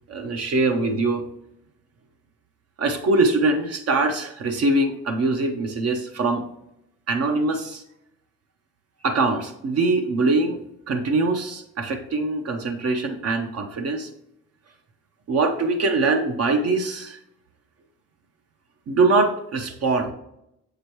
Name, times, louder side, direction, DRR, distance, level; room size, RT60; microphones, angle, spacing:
voice 1, 0.1-1.3 2.8-6.4 7.1-7.8 9.0-10.6 10.9-14.1 15.3-17.2 18.9-20.1, right 3 dB, 55° right, 5 dB, 0.7 m, -23 dB
6.9 x 4.9 x 3.0 m, 0.81 s
cardioid pair, 90°, 30 cm